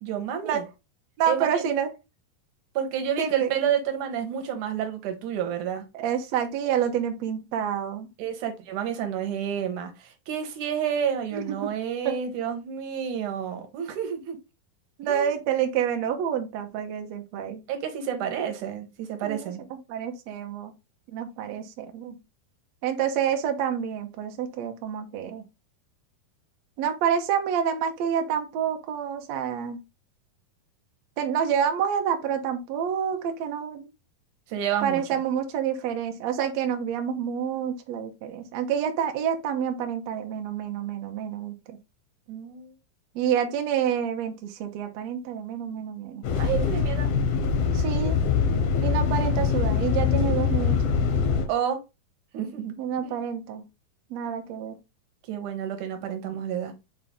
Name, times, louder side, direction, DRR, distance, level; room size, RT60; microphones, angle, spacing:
voice 1, 0.0-0.7 1.3-1.7 2.8-5.9 8.2-14.4 15.0-15.3 17.7-19.6 34.5-35.2 42.3-42.7 46.4-47.1 51.5-51.8 52.3-52.8 53.0-53.2 55.3-56.7, right 8 dB, 70° right, 2.2 m, -30 dB
voice 2, 1.2-1.9 3.2-3.5 5.9-8.1 11.3-11.4 12.0-12.2 15.0-17.6 19.2-19.4 19.9-20.7 21.1-22.2 22.8-25.4 26.8-29.8 31.2-33.9 34.8-41.8 43.1-46.2 47.7-48.2 48.8-51.2 52.8-53.6 54.1-54.8, right 8 dB, 85° right, 1.5 m, -28 dB
sound 1, 46.2-51.5, left 6 dB, 65° left, 2.2 m, -23 dB
5.6 x 4.8 x 3.6 m
omnidirectional pair, 4.4 m